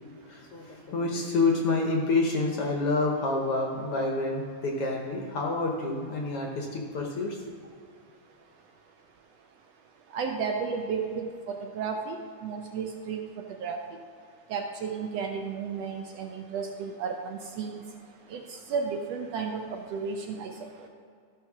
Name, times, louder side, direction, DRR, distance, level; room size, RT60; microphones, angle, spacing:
voice 1, 0.3-7.4, left 3 dB, 60° left, 0 dB, 1.7 m, -28 dB
voice 2, 10.1-12.2 12.4-13.2 13.6-13.8 14.5-17.8 18.3-18.4 18.7-20.7, right 5 dB, 75° right, 3 dB, 1.6 m, -33 dB
13.0 x 5.7 x 6.0 m, 2.3 s
omnidirectional pair, 3.4 m